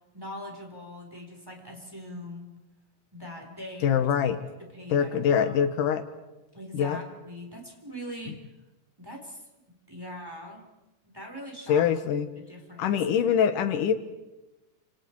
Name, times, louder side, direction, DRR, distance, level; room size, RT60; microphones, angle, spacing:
voice 1, 0.1-2.5 3.1-4.1 4.4-4.5 4.7-5.6 6.5-8.4 9.0-9.4 9.9-10.6 11.0-11.9 12.2-13.0, left 1 dB, 5° right, 1 dB, 4.0 m, -41 dB
voice 2, 3.8-4.4 4.9-6.0 6.7-7.0 8.3-8.4 11.7-12.3 12.8-13.9, left 8 dB, 85° left, 10 dB, 2.9 m, -24 dB
29.5 x 27.0 x 4.7 m, 1.0 s
omnidirectional pair, 3.6 m